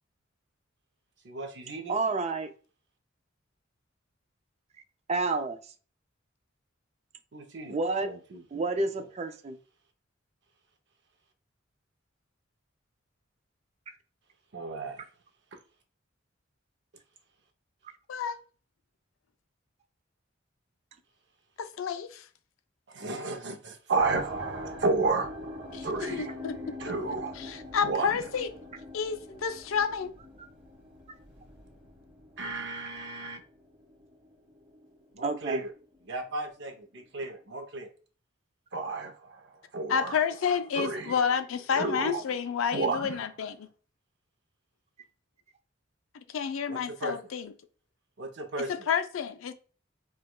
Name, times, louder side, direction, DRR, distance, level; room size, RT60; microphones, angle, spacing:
voice 1, 1.2-1.9 7.3-7.8 8.0-8.6 14.5-15.0 22.9-26.4 26.8-28.2 32.4-33.4 35.1-35.7 36.1-37.9 38.7-40.2 40.7-41.1 41.7-42.2 42.7-43.2 46.7-47.2 48.2-48.7, right 3 dB, 60° right, 0.7 m, -33 dB
voice 2, 1.9-2.5 5.1-5.6 7.6-8.1 8.5-9.6 35.2-35.6, right 3 dB, 30° right, 0.3 m, -29 dB
voice 3, 21.6-22.2 25.7-26.6 27.4-28.5 28.9-30.1 39.9-43.7 46.3-47.5 48.7-49.5, left 7 dB, 75° left, 0.4 m, -30 dB
sound 1, 24.0-35.1 35.4-36.0 36.6-36.7, left 2 dB, 5° right, 1.0 m, -45 dB
4.6 x 2.3 x 2.2 m
head